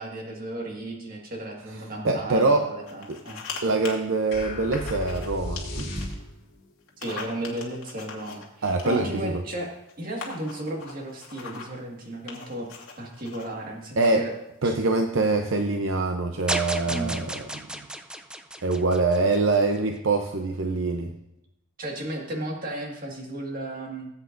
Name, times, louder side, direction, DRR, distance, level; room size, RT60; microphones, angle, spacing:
voice 1, 0.0-3.4 7.0-12.7 13.0-14.3 14.6-14.8 16.9-17.1 21.8-24.1, right 1 dB, 40° right, 0 dB, 1.8 m, -34 dB
voice 2, 2.0-2.7 3.6-6.1 8.6-9.3 14.0-14.3 14.6-17.3 18.6-21.1, right 3 dB, 65° right, 4 dB, 0.7 m, -24 dB
sound 1, 2.9-3.6 3.8-4.0 4.7-5.3 5.6-6.1 6.9-9.2 9.9-10.0 10.2-11.8 12.3-13.5 14.0-14.3, left 5 dB, 80° left, 2.2 m, -40 dB
sound 2, 4.3-6.6, left 1 dB, 55° left, 4.0 m, -34 dB
sound 3, 16.5-19.8, right 1 dB, 5° right, 0.3 m, -34 dB
18.5 x 8.2 x 2.6 m, 0.88 s
head